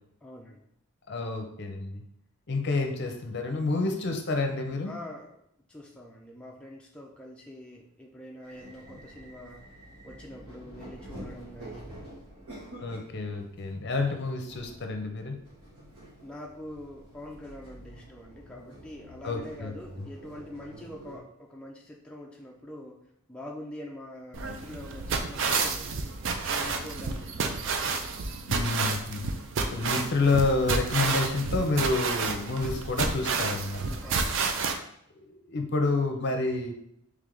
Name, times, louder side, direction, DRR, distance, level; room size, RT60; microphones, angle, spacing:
voice 1, 0.2-0.7 4.9-5.3 5.7-9.7 10.0-12.0 16.2-25.9 26.5-27.8 34.0-34.6, left 1 dB, 5° left, -2 dB, 0.4 m, -44 dB
voice 2, 1.1-2.0 2.5-4.9 12.8-15.4 19.2-19.7 28.5-29.3 29.7-33.8 35.2-36.7, left 3 dB, 50° left, 4 dB, 0.6 m, -29 dB
sound 1, 8.4-21.2, right 1 dB, 80° right, 1.5 m, -48 dB
sound 2, 24.3-34.7, right 4 dB, 60° right, 0.4 m, -30 dB
3.3 x 3.3 x 3.8 m, 0.74 s
head